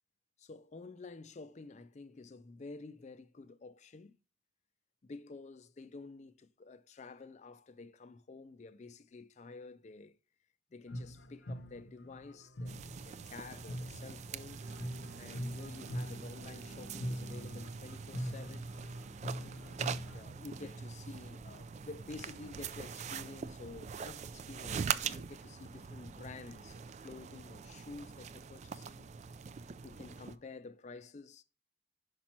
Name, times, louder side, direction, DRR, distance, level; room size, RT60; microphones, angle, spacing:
voice 1, 0.4-4.2 5.0-10.2 10.7-14.6 15.1-18.7 19.8-29.1 29.8-31.4, left 3 dB, 40° left, 0.4 m, -50 dB
sound 1, 10.9-20.2, equal, 70° left, 0.8 m, -43 dB
sound 2, 12.7-30.4, right 6 dB, 35° right, 0.3 m, -43 dB
sound 3, 14.6-17.4, equal, 55° right, 0.9 m, -55 dB
5.9 x 5.2 x 4.3 m
head